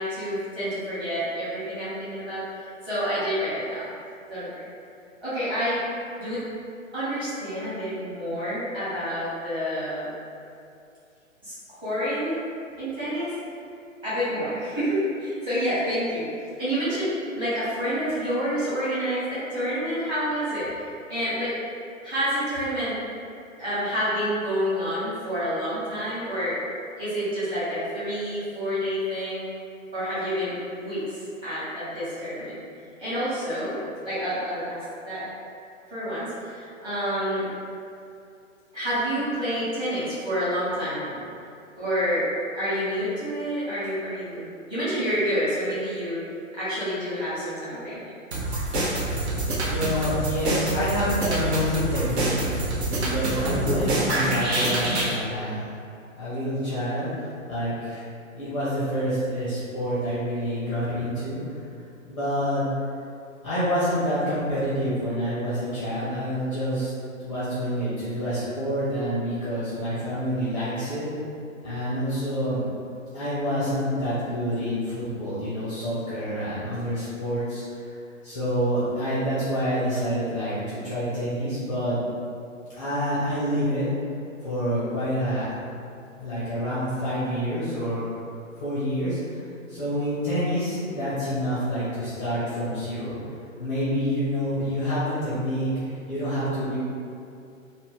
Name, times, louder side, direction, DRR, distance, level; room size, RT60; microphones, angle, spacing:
voice 1, 0.0-2.4 2.8-3.9 4.3-4.6 5.2-5.8 6.2-6.4 6.9-10.1 11.4-12.4 12.8-13.3 14.0-16.3 16.6-20.7 21.1-21.6 22.0-23.0 23.6-26.6 27.0-29.5 29.9-32.6 33.0-33.8 34.0-35.2 35.9-37.5 38.7-41.2 41.8-42.3 42.5-46.2 46.5-48.1, equal, 10° right, -14 dB, 1.0 m, -28 dB
sound 1, 48.3-55.2, right 1 dB, 55° right, 0.7 m, -26 dB
voice 2, 49.7-52.5 52.9-55.6 56.2-58.1 58.3-61.6 62.1-62.6 63.4-66.9 67.2-71.1 71.6-72.6 73.1-77.9 78.2-82.0 82.7-83.9 84.4-85.5 86.1-88.1 88.6-93.2 93.6-96.8, equal, 25° left, -11 dB, 0.5 m, -27 dB
2.4 x 2.1 x 3.3 m, 2.5 s
figure-of-eight pair, 125°, 40 cm